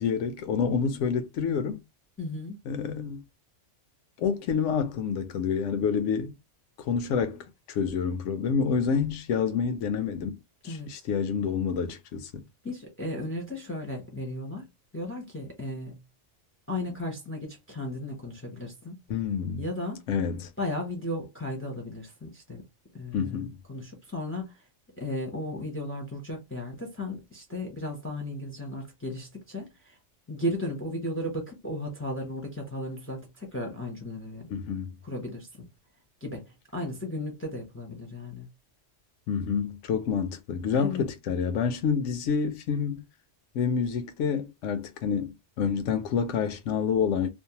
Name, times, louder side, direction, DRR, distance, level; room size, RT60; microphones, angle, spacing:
voice 1, 0.0-1.8 2.7-3.2 4.2-6.3 6.9-10.4 10.6-12.4 19.1-19.6 20.1-20.5 23.1-23.5 34.5-34.9 39.3-43.0 43.5-47.3, left 6 dB, 80° left, 0.9 m, -28 dB
voice 2, 2.2-2.6 10.6-10.9 12.6-14.7 14.9-16.0 16.7-19.0 19.6-20.1 20.6-22.6 22.9-24.5 25.0-29.9 30.3-34.5 35.0-35.7 36.2-38.5 40.7-41.0, left 1 dB, 15° left, 0.5 m, -35 dB
2.6 x 2.1 x 2.8 m
omnidirectional pair, 1.2 m